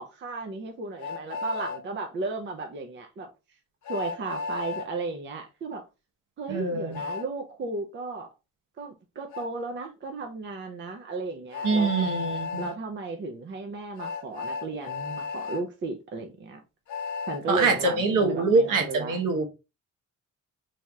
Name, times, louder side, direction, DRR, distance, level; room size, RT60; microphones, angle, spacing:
voice 1, 0.0-3.3 3.9-5.9 6.4-8.3 8.8-12.1 12.6-16.6 17.3-19.2, right 3 dB, 35° right, 0.6 m, -35 dB
Train, 1.0-1.8 3.8-4.9 6.9-7.3 9.3-9.5 11.5-12.7 14.0-15.6 16.9-17.4, left 4 dB, 65° left, 0.8 m, -33 dB
voice 2, 6.5-7.0 11.6-12.7 17.5-19.5, right 3 dB, 75° right, 1.1 m, -24 dB
3.3 x 2.8 x 3.5 m
wide cardioid pair, 165°, 32 cm